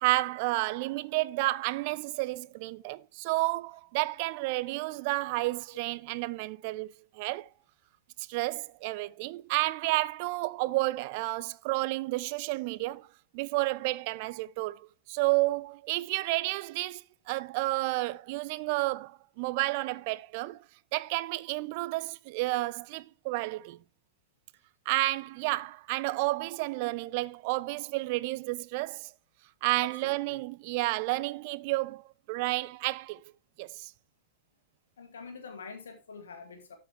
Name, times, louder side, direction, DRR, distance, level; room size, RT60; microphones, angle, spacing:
voice 1, 0.0-7.5 8.2-13.1 13.3-20.6 20.9-23.8 24.9-29.1 29.6-33.2 33.6-33.9, right 20 dB, 45° right, 0.4 m, -31 dB
voice 2, 29.8-30.4 35.0-36.8, left 4 dB, 65° left, 1.8 m, -45 dB
12.5 x 5.2 x 3.5 m
figure-of-eight pair, 90°, 0 cm